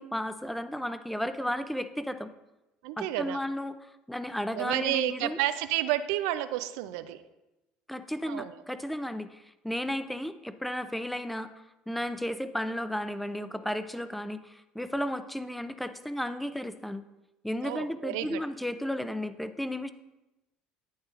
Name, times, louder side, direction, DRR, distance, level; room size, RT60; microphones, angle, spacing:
voice 1, 0.0-2.3 3.0-5.4 7.9-11.5 11.9-17.0 17.4-19.9, equal, 5° left, 11 dB, 0.5 m, -34 dB
voice 2, 2.8-3.4 4.5-7.2 8.3-8.5 17.6-18.4, right 14 dB, 80° right, 12 dB, 0.4 m, -30 dB
9.4 x 8.9 x 2.5 m, 1.0 s
supercardioid pair, 85°, 3 cm